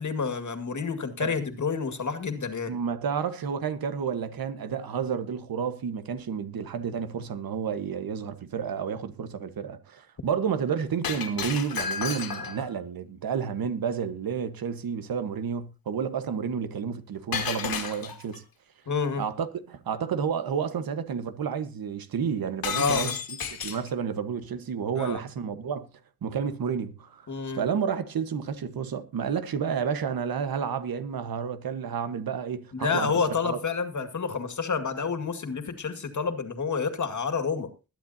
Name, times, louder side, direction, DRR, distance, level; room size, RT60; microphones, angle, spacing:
voice 1, 0.0-2.7 18.9-19.2 22.7-23.2 25.0-25.2 27.3-27.7 32.7-37.7, left 5 dB, 55° left, 2.1 m, -29 dB
voice 2, 2.7-18.4 19.2-23.4 23.6-25.8 26.2-27.3 27.6-33.6, right 7 dB, 85° right, 1.4 m, -30 dB
Shatter, 11.0-12.7 17.3-18.4 22.6-23.9, left 6 dB, 80° left, 2.4 m, -32 dB
21.0 x 10.5 x 2.8 m
wide cardioid pair, 90°, 35 cm